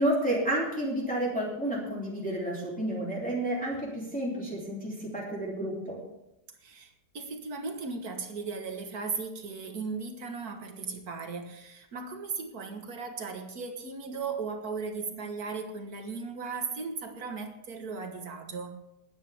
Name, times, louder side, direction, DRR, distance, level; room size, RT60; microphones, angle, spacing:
voice 1, 0.0-6.0, right 1 dB, 5° left, -5 dB, 3.1 m, -30 dB
voice 2, 6.6-18.8, right 4 dB, 60° right, 4 dB, 1.9 m, -37 dB
20.5 x 9.3 x 3.6 m, 0.88 s
omnidirectional pair, 1.9 m